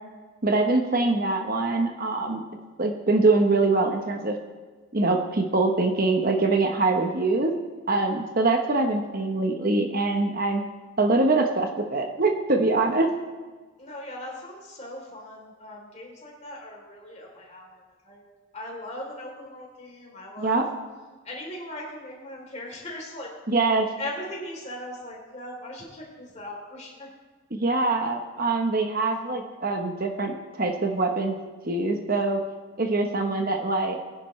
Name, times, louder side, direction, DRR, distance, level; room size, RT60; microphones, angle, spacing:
voice 1, 0.4-2.4 2.8-4.4 4.9-7.5 7.9-10.6 11.0-13.1 20.4-20.6 23.5-23.9 27.5-31.4 31.6-32.4 32.8-34.0, right 3 dB, 40° right, 4 dB, 0.9 m, -23 dB
voice 2, 13.8-18.2 18.5-20.6 21.2-23.3 24.0-27.1, left 1 dB, 30° left, -2 dB, 3.2 m, -39 dB
21.5 x 10.5 x 3.2 m, 1.3 s
head